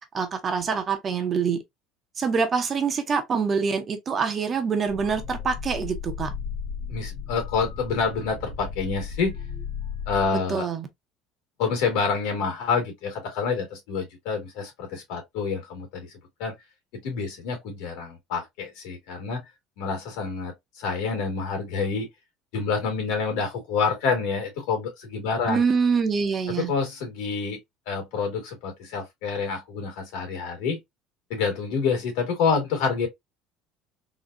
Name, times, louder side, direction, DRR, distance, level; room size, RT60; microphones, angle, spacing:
voice 1, 0.1-1.6 2.2-6.3 10.5-10.9 25.5-26.7, right 5 dB, 25° right, 0.5 m, -25 dB
sound 1, 4.9-10.3, left 6 dB, 45° left, 1.3 m, -35 dB
voice 2, 6.9-9.4 10.1-10.7 11.6-16.1 16.4-16.5 17.0-19.4 19.8-22.1 22.5-25.6 26.5-27.6 27.9-30.8 31.3-33.1, left 5 dB, 75° left, 2.0 m, -27 dB
3.7 x 2.5 x 2.5 m
cardioid pair, 175°, 0 cm